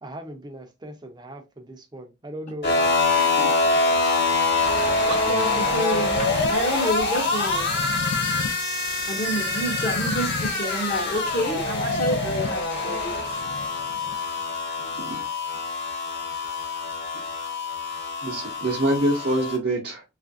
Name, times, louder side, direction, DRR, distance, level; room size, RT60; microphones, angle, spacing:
voice 1, 0.0-3.8, right 1 dB, 20° right, 0.6 m, -40 dB
sound 1, 2.6-19.6, left 3 dB, 55° left, 1.2 m, -25 dB
voice 2, 3.2-3.5 5.3-8.0 8.5-13.4, equal, 40° left, 0.7 m, -29 dB
sound 2, 6.2-14.1, left 3 dB, 90° left, 0.5 m, -35 dB
voice 3, 14.8-15.2 18.2-20.0, right 1 dB, 55° right, 0.8 m, -25 dB
3.1 x 2.5 x 2.5 m
head